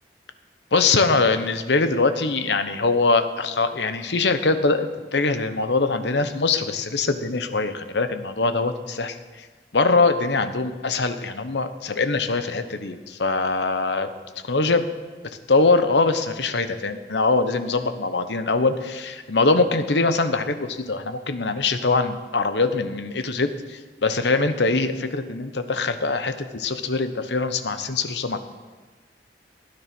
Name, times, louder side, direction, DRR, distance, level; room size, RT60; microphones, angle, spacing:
voice 1, 0.7-9.2 9.7-14.1 14.4-14.8 15.5-28.4, left 3 dB, 80° left, 10 dB, 1.0 m, -22 dB
16.0 x 10.0 x 6.1 m, 1.3 s
head